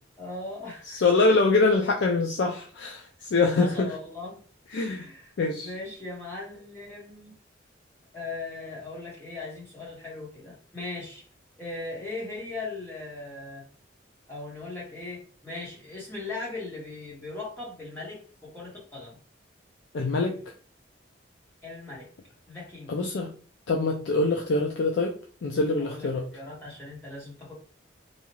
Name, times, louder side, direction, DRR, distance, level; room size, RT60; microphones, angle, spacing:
voice 1, 0.2-1.0 1.3-1.4 3.6-4.4 4.7-7.3 8.1-11.2 11.6-13.6 14.3-19.2 21.6-22.1 22.5-23.0 25.8-27.5, left 3 dB, 10° left, -6 dB, 1.0 m, -39 dB
voice 2, 0.9-3.9 4.7-5.1 5.4-5.7 19.9-20.4 22.9-23.3 23.7-25.2 25.4-26.2, left 3 dB, 70° left, 1 dB, 0.4 m, -24 dB
2.7 x 2.3 x 3.0 m, 0.43 s
head